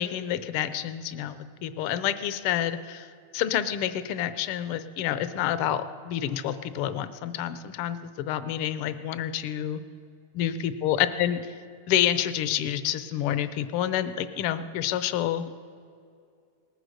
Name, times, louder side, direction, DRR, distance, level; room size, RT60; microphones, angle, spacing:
voice 1, 0.0-3.1 3.3-9.8 10.3-11.5 11.9-15.5, left 11 dB, 80° left, 13 dB, 1.6 m, -28 dB
19.5 x 9.2 x 6.4 m, 2.3 s
omnidirectional pair, 2.4 m